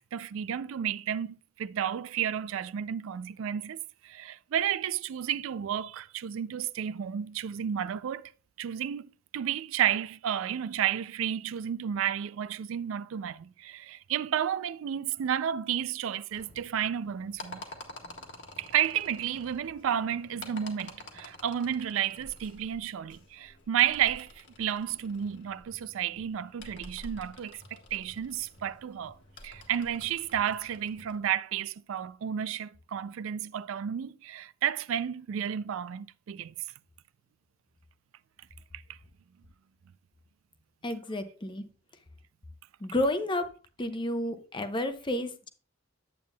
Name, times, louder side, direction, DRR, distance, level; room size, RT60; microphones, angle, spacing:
voice 1, 0.1-3.8 4.1-8.3 8.6-9.0 9.3-17.6 18.6-24.3 24.6-27.6 27.9-29.1 29.4-36.5, right 9 dB, 70° right, 0.3 m, -31 dB
sound 1, 16.3-31.2, left 2 dB, 60° left, 1.7 m, -49 dB
voice 2, 40.8-41.6 42.8-43.5 43.8-45.5, left 1 dB, 25° left, 0.7 m, -31 dB
9.1 x 8.5 x 2.2 m
head